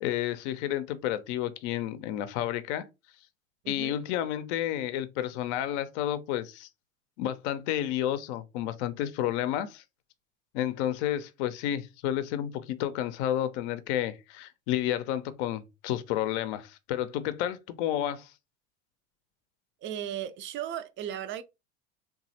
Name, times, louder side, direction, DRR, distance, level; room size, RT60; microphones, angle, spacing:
voice 1, 0.0-2.8 3.7-6.7 7.2-9.8 10.5-18.3, left 11 dB, 65° left, 0.6 m, -31 dB
voice 2, 3.6-4.0 19.8-21.4, right 10 dB, 35° right, 0.4 m, -36 dB
3.1 x 2.3 x 2.7 m
hypercardioid pair, 90°, 37 cm